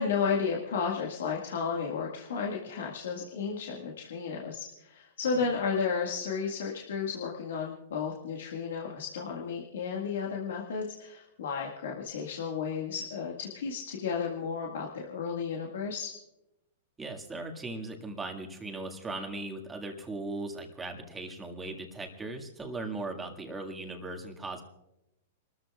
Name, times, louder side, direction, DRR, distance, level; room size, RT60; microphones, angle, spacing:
voice 1, 0.0-16.1, left 5 dB, 75° left, -1 dB, 1.9 m, -33 dB
voice 2, 17.0-24.6, right 2 dB, 10° right, 2 dB, 2.0 m, -38 dB
29.5 x 13.5 x 2.4 m, 0.90 s
hypercardioid pair, 125°, 0 cm